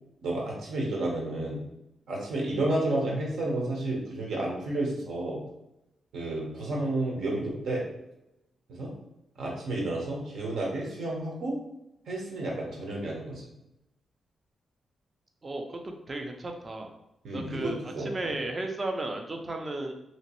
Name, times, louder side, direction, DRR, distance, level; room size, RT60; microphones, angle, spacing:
voice 1, 0.2-1.6 2.1-5.4 6.1-7.8 8.7-8.9 9.4-11.6 12.1-13.4 17.2-18.3, right 2 dB, 80° right, -2 dB, 1.0 m, -31 dB
voice 2, 15.4-16.9 17.3-19.9, right 2 dB, 30° right, 4 dB, 0.5 m, -34 dB
3.0 x 2.9 x 3.0 m, 0.87 s
wide cardioid pair, 140°, 0 cm